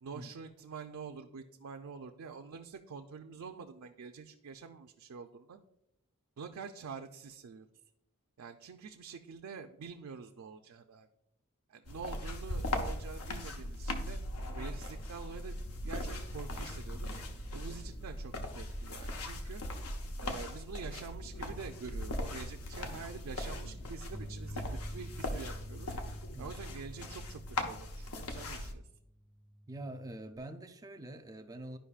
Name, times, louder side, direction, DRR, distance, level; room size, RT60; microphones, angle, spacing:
voice 1, 0.0-5.6 6.4-7.7 8.4-11.1 11.7-14.2 14.5-15.6 15.8-17.2 17.5-19.6 20.2-24.6 24.9-28.8, right 5 dB, 70° right, 0.4 m, -46 dB
sound 1, 11.9-28.7, left 1 dB, 85° left, 0.8 m, -39 dB
Bass guitar, 24.1-30.4, equal, 40° left, 1.2 m, -49 dB
voice 2, 29.7-31.8, right 1 dB, 15° right, 0.5 m, -45 dB
11.5 x 5.2 x 2.4 m
head